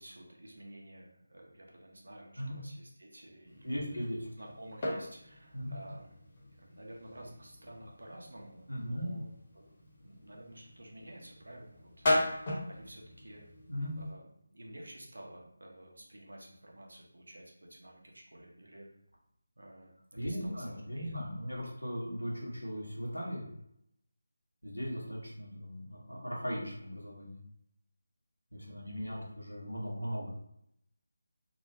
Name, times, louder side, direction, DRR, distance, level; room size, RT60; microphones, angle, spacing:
voice 1, 0.0-4.1 4.4-6.2 6.5-13.4 14.0-18.9 19.6-21.2 28.6-29.2, right 1 dB, 70° right, 0 dB, 0.7 m, -52 dB
sound 1, 3.5-14.1, left 1 dB, 35° left, 0.7 m, -38 dB
voice 2, 3.6-4.3 5.5-5.8 8.7-9.1 13.7-13.9 20.1-23.5 24.6-27.4 28.5-30.3, equal, 90° left, -4 dB, 1.1 m, -38 dB
2.9 x 2.1 x 2.7 m, 0.76 s
figure-of-eight pair, 155°, 0 cm